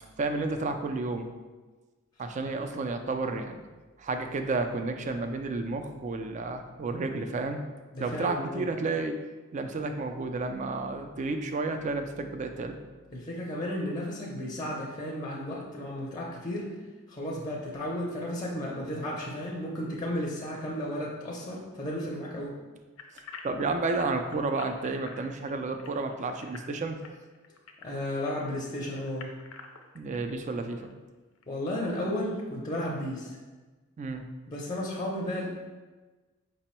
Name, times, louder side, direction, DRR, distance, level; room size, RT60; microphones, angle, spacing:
voice 1, 0.2-1.3 2.2-3.6 4.0-7.6 8.0-9.1 9.5-12.7 23.4-27.0 29.9-30.9 34.0-34.2, right 3 dB, 35° right, 6 dB, 0.3 m, -31 dB
voice 2, 7.9-8.7 13.1-16.7 17.1-22.6 27.8-29.3 31.5-33.4 34.5-35.5, left 1 dB, 20° left, -3 dB, 0.5 m, -33 dB
sound 1, 23.0-28.4 28.9-30.3 30.8-30.9 31.4-31.5, left 5 dB, 85° left, 0.5 m, -46 dB
5.1 x 2.0 x 4.2 m, 1.3 s
head